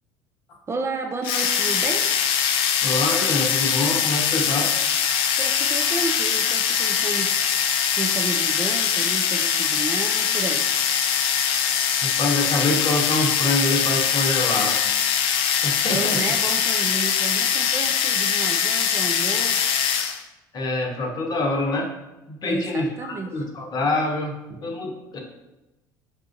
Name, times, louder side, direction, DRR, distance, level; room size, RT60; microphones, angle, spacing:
voice 1, 0.7-2.1 5.4-7.3 7.9-10.7 15.9-19.8 22.4-23.4, right 3 dB, 25° right, 3 dB, 0.4 m, -31 dB
sound 1, 1.2-20.2, left 8 dB, 55° left, 0.4 m, -22 dB
voice 2, 2.8-4.7 12.0-14.8 15.6-16.3 20.5-21.9 22.3-25.2, left 2 dB, 40° left, 2 dB, 0.8 m, -25 dB
5.6 x 2.4 x 2.5 m, 1.0 s
hypercardioid pair, 65°, 11 cm